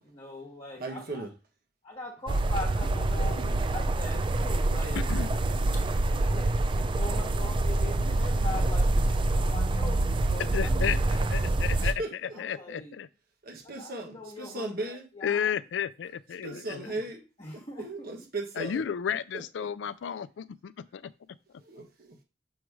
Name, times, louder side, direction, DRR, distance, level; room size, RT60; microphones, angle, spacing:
voice 1, 0.0-1.3 1.8-5.1 6.1-11.8 12.3-13.0 13.8-15.6 16.8-17.0 17.4-17.9, left 2 dB, 30° left, 1.3 m, -42 dB
voice 2, 0.8-1.3 11.8-12.6 13.4-15.0 16.4-17.2 17.8-18.8 19.3-19.4 21.6-22.2, right 2 dB, 55° right, 1.4 m, -37 dB
sound 1, 2.3-11.9, right 2 dB, 25° right, 0.4 m, -26 dB
voice 3, 10.5-12.0 12.4-13.1 15.2-16.9 18.6-21.1, left 8 dB, 75° left, 0.4 m, -33 dB
6.2 x 3.2 x 4.7 m
head